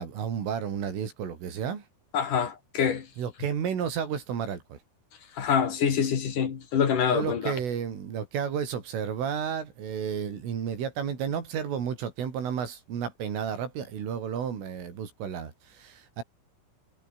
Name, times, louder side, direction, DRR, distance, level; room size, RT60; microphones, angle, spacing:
voice 1, 0.0-1.9 3.2-4.8 7.1-16.2, right 8 dB, 70° right, 6.5 m, -32 dB
voice 2, 2.1-3.1 5.4-7.5, left 7 dB, 45° left, 3.5 m, -26 dB
omnidirectional pair, 5.9 m